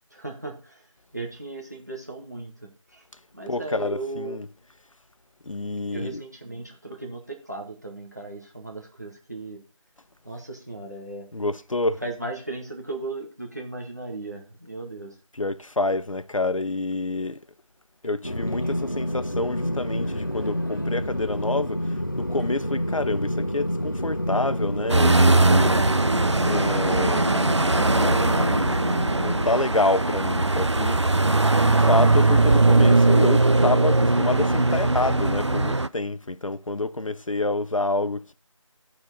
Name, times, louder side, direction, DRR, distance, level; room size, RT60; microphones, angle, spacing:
voice 1, 0.1-0.9 1.1-3.0 3.3-4.4 5.9-9.6 10.2-11.3 12.0-15.2, right 2 dB, 30° right, 1.2 m, -36 dB
voice 2, 3.5-4.5 5.5-6.2 11.3-12.0 15.3-17.4 18.0-25.9 26.4-27.5 28.0-28.7 29.2-31.3 31.6-38.3, left 2 dB, 75° left, 0.6 m, -28 dB
sound 1, 18.2-29.6, equal, 40° left, 0.6 m, -28 dB
sound 2, 24.9-35.9, right 2 dB, 60° right, 0.5 m, -20 dB
12.5 x 4.4 x 5.2 m
figure-of-eight pair, 175°, 17 cm